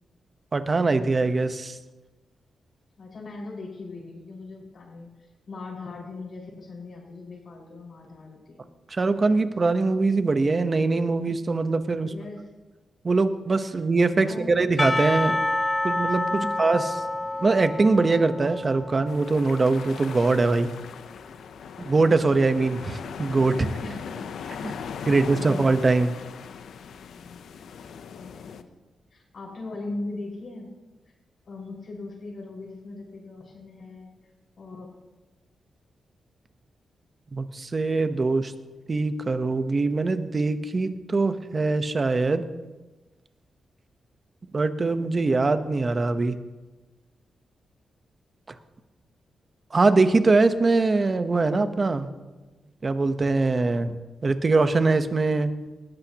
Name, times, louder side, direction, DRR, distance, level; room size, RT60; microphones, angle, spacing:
voice 1, 0.5-1.8 8.9-12.1 13.0-15.4 15.8-16.9 17.4-20.7 21.8-23.7 24.6-24.7 25.1-26.2 37.3-38.5 38.9-42.4 44.5-46.4 49.7-52.1 52.8-54.0 54.2-55.5, right 3 dB, 35° right, 10 dB, 1.0 m, -22 dB
voice 2, 3.0-8.7 12.0-12.4 13.7-13.8 14.2-14.7 16.3-16.9 23.8-24.3 24.6-25.7 27.1-27.6 28.1-28.6 29.1-30.7 31.4-34.1 34.6-34.9, left 2 dB, 55° left, -2 dB, 5.4 m, -40 dB
Percussion / Church bell, 14.8-20.0, left 2 dB, 15° left, 0.4 m, -28 dB
sound 1, 19.1-28.6, left 7 dB, 85° left, 0.7 m, -39 dB
19.5 x 14.5 x 3.0 m, 1.2 s
cardioid pair, 95°, 0 cm